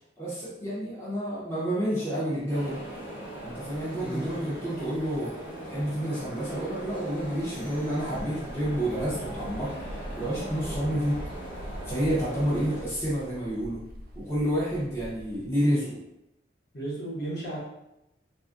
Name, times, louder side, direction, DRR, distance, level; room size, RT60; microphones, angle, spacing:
voice 1, 0.2-2.8 3.4-5.3 5.6-9.7 10.2-11.2 11.9-13.8 14.1-16.0, equal, 15° left, -8 dB, 0.6 m, -29 dB
sound 1, 2.5-12.8, right 1 dB, 90° left, 1.5 m, -39 dB
sound 2, 3.0-3.1 3.4-15.5, equal, 50° right, 0.4 m, -44 dB
voice 2, 16.7-17.6, right 2 dB, 55° left, -6 dB, 1.0 m, -33 dB
3.3 x 2.4 x 2.5 m, 0.86 s
head